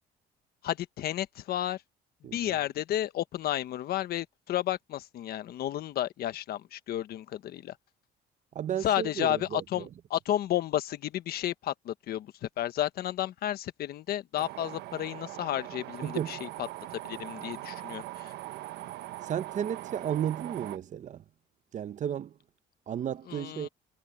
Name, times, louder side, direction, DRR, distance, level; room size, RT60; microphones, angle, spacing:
voice 1, 0.6-1.8 2.2-7.8 8.8-16.7 17.0-18.3 23.3-23.7, left 12 dB, 65° left, 1.3 m, -32 dB
voice 2, 2.2-2.6 8.5-9.9 16.0-16.4 19.2-21.2 21.7-22.3 22.9-23.7, right 9 dB, 45° right, 0.8 m, -33 dB
sound 1, 14.4-20.8, right 15 dB, 80° right, 1.2 m, -41 dB
cardioid pair, 110°, 17 cm